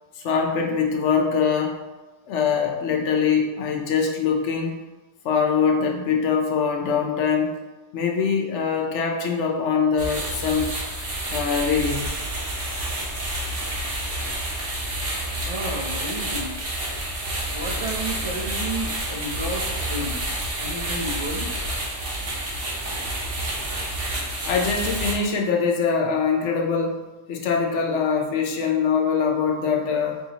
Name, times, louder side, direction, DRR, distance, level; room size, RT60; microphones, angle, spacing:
voice 1, 0.2-1.7 2.3-4.8 5.2-7.5 7.9-10.7 11.3-12.1 24.5-27.0 27.3-30.2, left 6 dB, 75° left, 0 dB, 1.0 m, -23 dB
sound 1, 10.0-25.1, right 1 dB, 80° right, 1.3 m, -29 dB
voice 2, 15.5-16.6 17.5-20.2 20.6-21.5, right 2 dB, 50° right, -5 dB, 0.3 m, -32 dB
4.6 x 2.8 x 2.8 m, 1.2 s
omnidirectional pair, 1.2 m